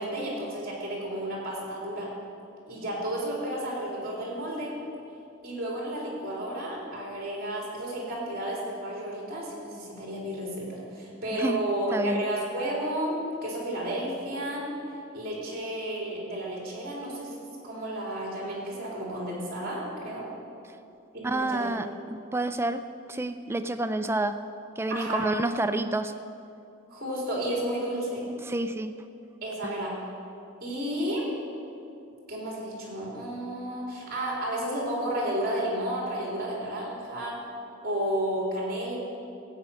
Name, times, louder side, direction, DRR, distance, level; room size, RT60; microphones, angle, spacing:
voice 1, 0.0-2.1 2.7-4.7 5.4-14.7 15.1-17.4 17.6-20.3 21.1-21.7 24.9-25.3 26.9-28.3 29.4-29.9 30.6-31.3 32.3-37.4 37.8-39.0, right 1 dB, 45° right, -3 dB, 3.5 m, -32 dB
voice 2, 11.9-12.2 21.2-22.8 23.1-24.4 24.8-26.1 28.4-28.9, right 2 dB, 10° right, 9 dB, 0.3 m, -29 dB
14.5 x 8.7 x 5.8 m, 2.7 s
head